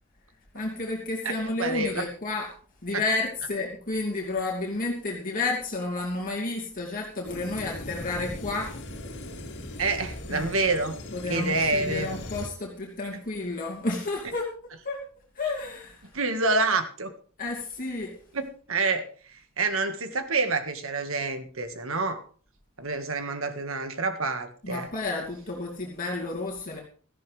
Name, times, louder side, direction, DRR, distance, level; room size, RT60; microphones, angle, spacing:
voice 1, 0.5-2.5 2.8-8.8 10.3-10.6 11.1-14.5 14.8-15.0 15.3-16.1 17.4-18.1 24.6-26.8, left 3 dB, 40° left, -2 dB, 2.6 m, -31 dB
voice 2, 1.6-2.0 2.9-3.0 9.8-11.0 11.3-12.2 16.1-17.1 18.3-22.3 22.8-24.9, right 3 dB, 65° right, 8 dB, 1.7 m, -28 dB
sound 1, 7.2-12.5, left 1 dB, 55° left, 2.7 m, -39 dB
17.5 x 13.5 x 3.4 m, 0.42 s
head